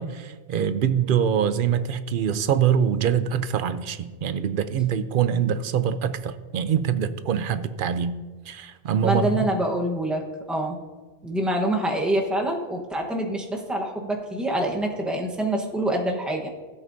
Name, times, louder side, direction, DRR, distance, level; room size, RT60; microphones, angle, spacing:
voice 1, 0.0-8.2 8.5-9.3, right 8 dB, 60° right, 12 dB, 0.7 m, -24 dB
voice 2, 9.0-10.8 11.2-16.5, right 1 dB, ahead, 0 dB, 1.0 m, -26 dB
15.5 x 8.1 x 2.6 m, 1.4 s
omnidirectional pair, 1.1 m